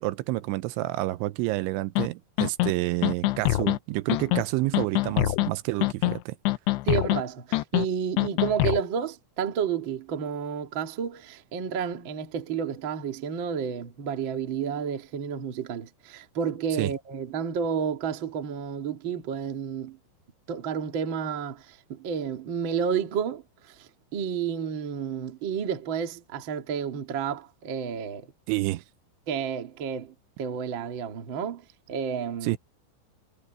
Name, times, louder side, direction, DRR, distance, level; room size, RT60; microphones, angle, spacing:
voice 1, 0.0-6.4 16.8-16.9 28.5-28.8 32.4-32.6, right 19 dB, 85° right, 3.0 m, -29 dB
sound 1, 2.0-2.1 2.4-2.7 3.0-3.8 4.1-4.4 4.7-5.5 5.8-6.2 6.5-7.2 7.5-7.9 8.2-8.8, left 19 dB, 85° left, 2.4 m, -24 dB
voice 2, 6.8-20.0 20.5-28.3 29.3-32.6, right 7 dB, 55° right, 1.3 m, -31 dB
omnidirectional pair, 5.5 m